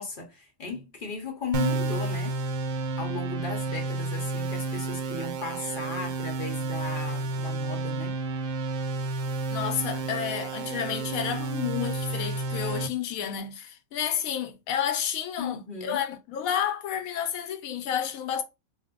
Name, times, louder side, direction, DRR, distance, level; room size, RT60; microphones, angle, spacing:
voice 1, 0.0-2.4 3.0-8.1 15.4-16.0, left 4 dB, 50° left, 0.7 m, -36 dB
sound 1, 1.5-12.9, right 3 dB, 80° right, 1.0 m, -31 dB
voice 2, 9.5-18.4, left 9 dB, 90° left, 1.0 m, -31 dB
2.5 x 2.1 x 3.5 m
omnidirectional pair, 1.4 m